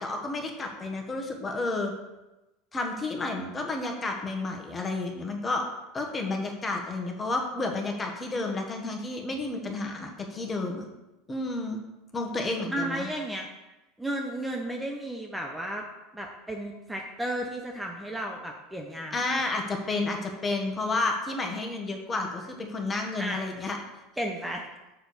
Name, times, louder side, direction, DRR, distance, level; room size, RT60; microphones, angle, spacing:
voice 1, 0.0-1.9 2.7-5.6 5.9-10.8 11.3-11.8 12.1-13.1 19.1-23.8, left 2 dB, 25° left, 2 dB, 1.5 m, -31 dB
voice 2, 12.7-13.5 14.0-15.8 16.1-19.2 23.2-23.4 24.2-24.6, right 1 dB, 5° right, 1 dB, 0.9 m, -33 dB
6.6 x 4.4 x 6.7 m, 1.0 s
hypercardioid pair, 95°, 0 cm